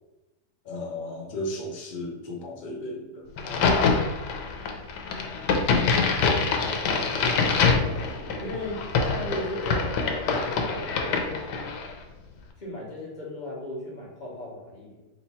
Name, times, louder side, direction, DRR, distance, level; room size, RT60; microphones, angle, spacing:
voice 1, 0.6-4.1, left 1 dB, 60° left, 0 dB, 0.5 m, -35 dB
Crack, 3.4-11.9, left 4 dB, 90° left, 1.2 m, -25 dB
voice 2, 8.4-11.7 12.6-15.0, left 1 dB, 30° left, -5 dB, 1.1 m, -37 dB
3.3 x 2.9 x 4.2 m, 1.1 s
omnidirectional pair, 1.8 m